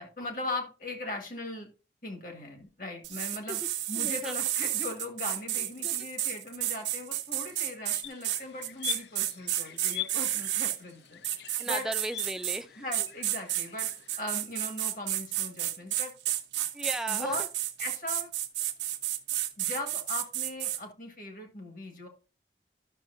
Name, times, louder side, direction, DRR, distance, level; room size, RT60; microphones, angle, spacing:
voice 1, 0.0-1.7 2.0-3.6 3.9-11.2 11.6-11.9 12.8-13.9 14.2-16.1 17.1-17.4 17.8-18.3 19.6-22.1, left 2 dB, 50° left, 1.8 m, -39 dB
sound 1, 3.0-10.8 11.2-12.6 12.9-20.8, right 13 dB, 90° right, 0.8 m, -31 dB
voice 2, 4.0-4.4 5.8-6.1 11.6-12.8 16.7-17.4, right 1 dB, 5° right, 0.4 m, -36 dB
sound 2, 8.0-14.2, left 13 dB, 75° left, 0.4 m, -43 dB
12.0 x 6.4 x 2.7 m
head